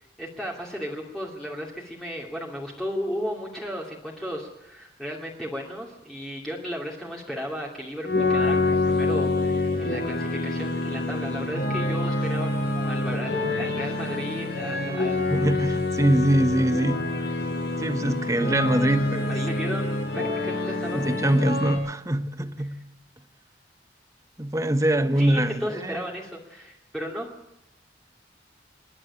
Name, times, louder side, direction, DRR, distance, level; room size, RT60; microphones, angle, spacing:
voice 1, 0.0-15.2 19.3-21.1 22.6-22.8 25.2-27.3, equal, 5° left, 2.6 m, -34 dB
sound 1, 8.0-21.7, left 2 dB, 65° left, 6.6 m, -26 dB
voice 2, 15.3-17.0 17.8-19.3 20.9-22.8 24.4-26.0, right 1 dB, 20° right, 1.2 m, -23 dB
27.5 x 11.5 x 9.8 m
head